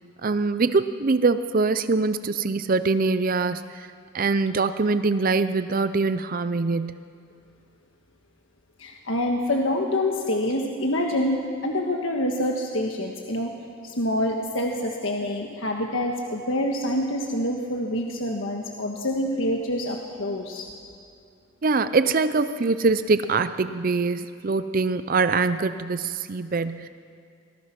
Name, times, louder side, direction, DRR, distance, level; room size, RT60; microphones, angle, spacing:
voice 1, 0.2-3.9 4.1-7.0 21.6-26.9, right 4 dB, 40° right, 12 dB, 0.5 m, -23 dB
voice 2, 8.8-13.5 13.8-20.7, left 1 dB, 65° left, 1 dB, 1.5 m, -26 dB
26.0 x 19.5 x 6.0 m, 2.3 s
head